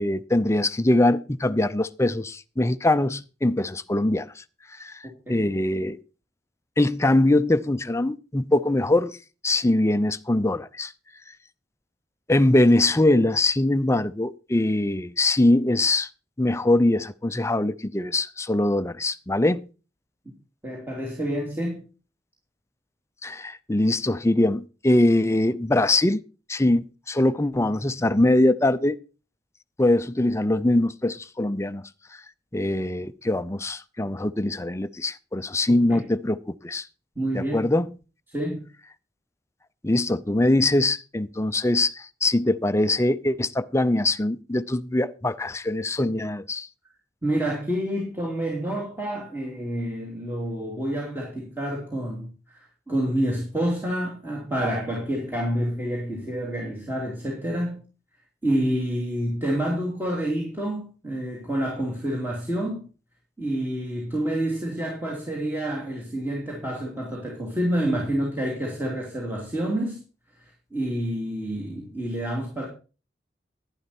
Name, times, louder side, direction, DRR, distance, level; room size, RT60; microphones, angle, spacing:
voice 1, 0.0-4.4 4.8-5.0 5.3-6.0 6.8-9.2 9.4-10.9 12.3-16.1 16.4-19.6 23.2-26.2 26.5-29.0 29.8-31.8 32.5-36.9 37.3-37.9 39.8-46.7, left 1 dB, 15° left, 0.5 m, -22 dB
voice 2, 20.6-21.8 35.7-36.0 37.2-37.7 38.3-38.6 47.2-57.8 58.4-62.8 63.4-70.0 70.7-72.7, right 1 dB, 10° right, 2.9 m, -28 dB
11.5 x 11.0 x 4.4 m
head